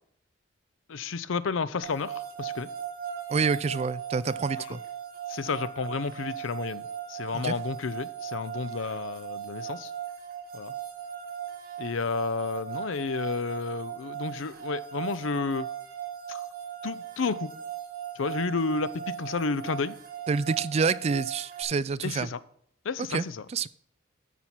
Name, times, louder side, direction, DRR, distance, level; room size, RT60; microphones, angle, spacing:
voice 1, 0.9-2.7 4.6-4.8 5.3-9.9 10.5-10.7 11.8-15.7 16.3-16.4 16.8-17.5 18.1-20.0 22.0-22.4 22.8-23.4, left 4 dB, 75° left, 15 dB, 0.5 m, -31 dB
sound 1, 1.8-21.6, right 9 dB, 45° right, 1.6 m, -38 dB
voice 2, 3.3-4.8 7.4-7.5 20.3-22.3 23.1-23.2 23.5-23.7, right 5 dB, 30° right, 16 dB, 0.3 m, -27 dB
12.5 x 4.5 x 5.6 m, 0.66 s
head